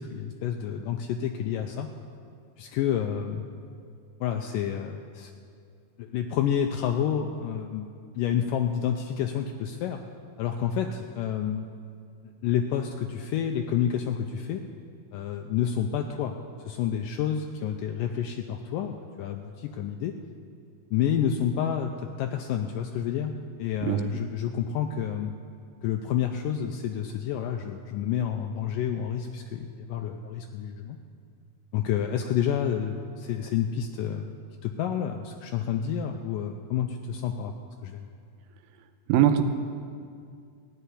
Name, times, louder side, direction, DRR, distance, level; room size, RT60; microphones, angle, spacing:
voice 1, 0.0-1.9 2.6-3.4 4.2-5.3 6.0-7.9 8.1-10.0 10.4-11.7 12.4-14.6 15.1-16.4 16.7-20.1 20.9-25.3 25.8-31.0 31.7-34.3 34.6-37.5 37.8-38.1, left 9 dB, 80° left, 4 dB, 2.1 m, -29 dB
voice 2, 39.1-39.4, right 11 dB, 85° right, 8 dB, 2.5 m, -20 dB
15.5 x 6.7 x 9.9 m, 2.2 s
omnidirectional pair, 4.2 m